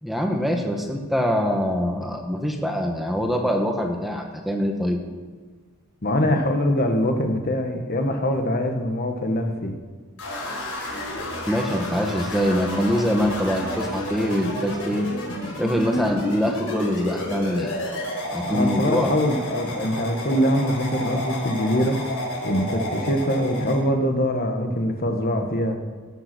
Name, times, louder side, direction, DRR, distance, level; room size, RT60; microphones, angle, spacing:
voice 1, 0.0-5.0 11.5-15.1 15.6-17.7 18.3-19.1, equal, ahead, 2 dB, 1.3 m, -24 dB
voice 2, 6.0-9.8 18.4-22.0 22.4-25.8, equal, 45° left, 5 dB, 1.3 m, -23 dB
sound 1, 10.2-23.8, left 1 dB, 85° left, 4.3 m, -31 dB
17.5 x 7.8 x 6.0 m, 1.4 s
head